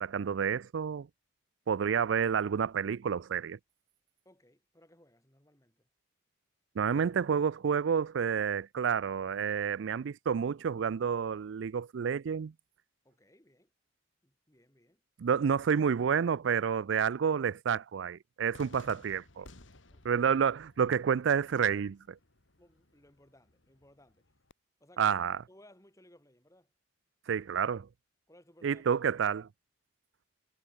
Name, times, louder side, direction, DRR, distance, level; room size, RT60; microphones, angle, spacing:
voice 1, 0.0-1.1 1.7-3.6 6.8-12.5 15.2-19.5 20.0-22.2 25.0-25.4 27.3-27.9 28.6-29.5, right 7 dB, 80° right, 0.4 m, -29 dB
voice 2, 4.2-5.9 13.0-13.7 14.2-15.0 19.9-20.2 22.6-24.3 24.8-25.2 25.5-26.7 28.3-29.0, left 1 dB, 15° left, 6.1 m, -61 dB
Cheering / Fireworks, 18.5-24.5, left 2 dB, 80° left, 2.8 m, -57 dB
head